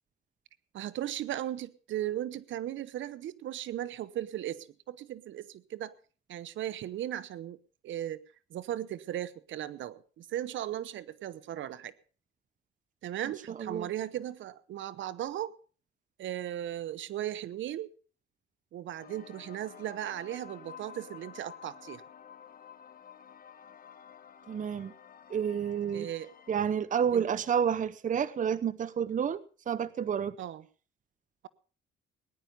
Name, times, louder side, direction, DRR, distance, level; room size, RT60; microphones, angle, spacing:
voice 1, 0.7-5.9 6.3-7.6 7.8-8.2 8.5-11.9 13.0-15.5 16.2-17.9 18.7-22.0 25.9-26.3 27.1-27.2 30.4-30.6, right 12 dB, 75° right, 0.9 m, -37 dB
sound 1, 19.0-26.7, left 8 dB, 45° left, 1.4 m, -51 dB
voice 2, 24.5-24.9 25.3-26.1 26.5-29.4 29.7-30.4, right 8 dB, 40° right, 0.7 m, -29 dB
18.5 x 10.5 x 5.3 m
cardioid pair, 90°, 20 cm